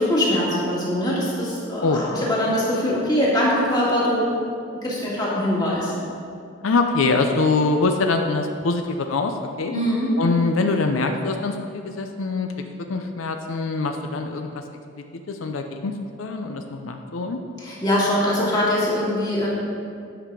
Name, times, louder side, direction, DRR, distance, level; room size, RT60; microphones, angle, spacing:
voice 1, 0.0-4.4 4.8-5.9 9.7-10.1 17.6-19.5, left 1 dB, 20° left, -6 dB, 1.9 m, -22 dB
voice 2, 6.6-9.7 10.2-12.5 12.9-14.6 15.3-15.9 16.2-17.4, left 3 dB, 90° left, 5 dB, 0.6 m, -23 dB
9.7 x 5.9 x 4.8 m, 2.3 s
head